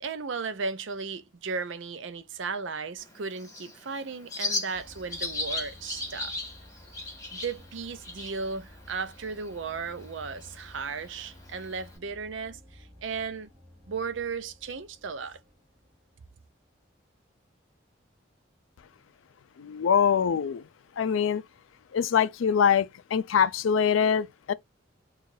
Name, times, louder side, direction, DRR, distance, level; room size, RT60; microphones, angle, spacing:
voice 1, 0.0-6.3 7.3-13.5 13.9-15.4, right 5 dB, 70° right, 0.5 m, -35 dB
Bird, 3.0-12.0, left 2 dB, 15° left, 1.6 m, -38 dB
sound 1, 4.7-16.7, left 1 dB, 15° right, 0.8 m, -53 dB
voice 2, 19.6-20.6 21.0-21.4 21.9-24.5, left 7 dB, 80° left, 0.4 m, -24 dB
4.7 x 2.4 x 2.6 m
head